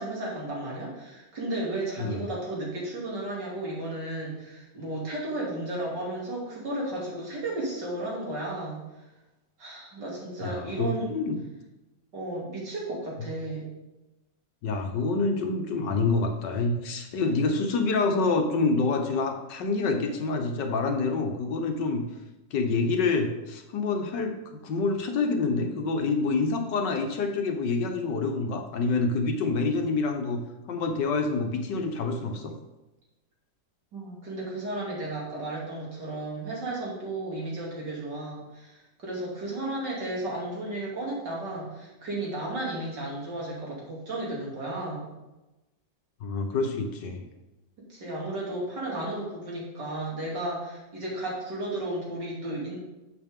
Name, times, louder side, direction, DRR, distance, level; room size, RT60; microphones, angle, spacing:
voice 1, 0.0-8.8 9.6-11.1 12.1-13.7 33.9-45.1 47.9-52.8, right 1 dB, 75° right, -4 dB, 3.5 m, -34 dB
voice 2, 10.4-11.3 14.6-22.0 22.5-24.4 24.6-30.4 30.7-32.5 46.2-47.2, left 3 dB, 80° left, 4 dB, 1.7 m, -27 dB
11.0 x 7.9 x 3.7 m, 1.0 s
omnidirectional pair, 1.9 m